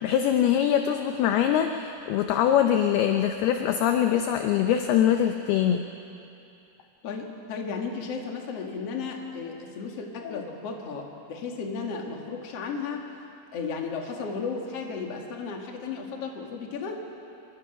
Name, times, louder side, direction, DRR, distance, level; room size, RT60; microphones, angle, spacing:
voice 1, 0.0-5.8, left 10 dB, 75° left, 6 dB, 2.4 m, -23 dB
voice 2, 7.0-13.1 13.5-17.0, left 5 dB, 45° left, 1 dB, 2.4 m, -34 dB
27.0 x 23.5 x 6.0 m, 2.7 s
omnidirectional pair, 5.3 m